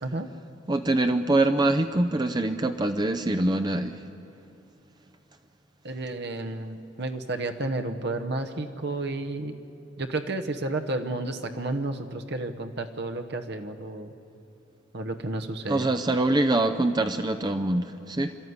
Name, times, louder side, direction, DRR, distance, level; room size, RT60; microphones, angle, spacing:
voice 1, 0.7-4.1 15.7-18.4, right 2 dB, 20° right, 7 dB, 0.6 m, -24 dB
voice 2, 5.8-9.5 10.0-14.1 14.9-15.9, right 2 dB, 60° right, 6 dB, 1.1 m, -31 dB
27.0 x 13.0 x 9.6 m, 2.9 s
head